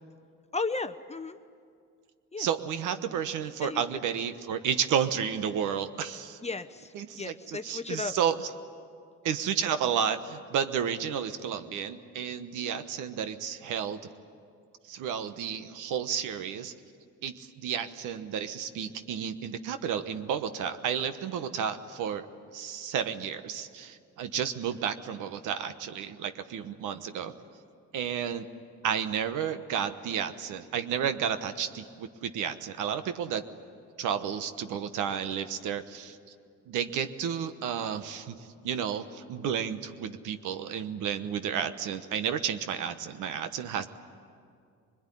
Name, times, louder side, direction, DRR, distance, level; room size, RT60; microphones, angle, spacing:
voice 1, 0.5-1.4 2.3-2.5 3.6-3.8 6.4-6.9 7.1-8.1, left 3 dB, 20° left, 10 dB, 0.7 m, -34 dB
voice 2, 2.4-6.4 6.9-8.5 9.2-14.0 14.9-16.7 17.2-22.3 22.5-27.3 27.9-28.5 28.8-33.4 34.0-36.2 36.7-43.9, right 8 dB, 90° right, 10 dB, 1.2 m, -32 dB
24.0 x 21.5 x 10.0 m, 2.3 s
cardioid pair, 90°, 30 cm